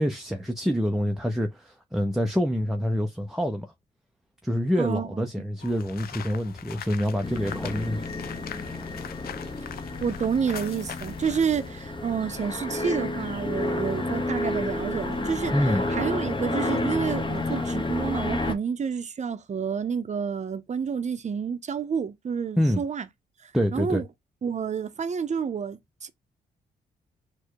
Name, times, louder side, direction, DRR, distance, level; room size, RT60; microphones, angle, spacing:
voice 1, 0.0-3.7 4.4-8.1 15.5-15.9 22.6-22.8 23.5-24.0, equal, ahead, 0.7 m, -26 dB
voice 2, 4.8-5.3 10.0-15.5 15.9-23.1 23.7-24.0 24.4-26.1, right 6 dB, 45° right, 0.8 m, -29 dB
sound 1, 5.6-11.7, left 9 dB, 70° left, 0.5 m, -41 dB
sound 2, 7.2-18.5, left 2 dB, 30° left, 1.2 m, -30 dB
4.4 x 2.3 x 4.6 m
cardioid pair, 65°, 16 cm